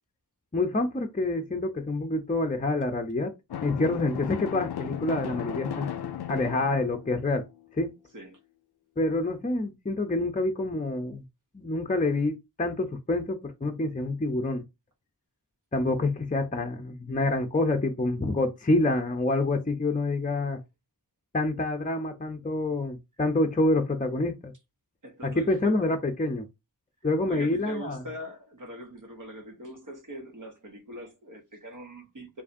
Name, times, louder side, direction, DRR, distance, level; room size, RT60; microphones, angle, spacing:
voice 1, 0.5-3.3 3.6-5.9 6.3-7.4 7.7-7.9 9.0-11.2 11.5-14.6 15.7-20.6 21.3-24.5 25.2-26.5 27.0-28.0, left 2 dB, 20° left, 0.6 m, -27 dB
Drum, 3.5-7.3, left 9 dB, 90° left, 0.5 m, -35 dB
voice 2, 25.0-25.9 27.3-32.4, equal, 55° right, 1.2 m, -42 dB
4.7 x 2.7 x 2.6 m
wide cardioid pair, 75°, 38 cm